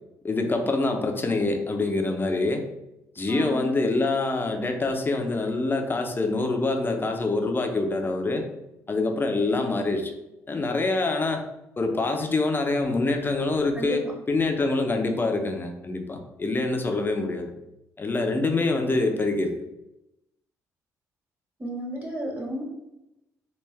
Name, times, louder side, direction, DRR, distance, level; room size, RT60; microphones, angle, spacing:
voice 1, 0.2-2.7 3.2-8.5 8.9-10.1 10.5-11.5 11.8-17.5 18.0-19.5, left 3 dB, 25° left, 4 dB, 0.7 m, -25 dB
voice 2, 3.3-3.9 13.7-14.1 21.6-22.6, right 1 dB, 20° right, -1 dB, 1.4 m, -33 dB
3.4 x 2.5 x 3.2 m, 0.91 s
hypercardioid pair, 50°, 8 cm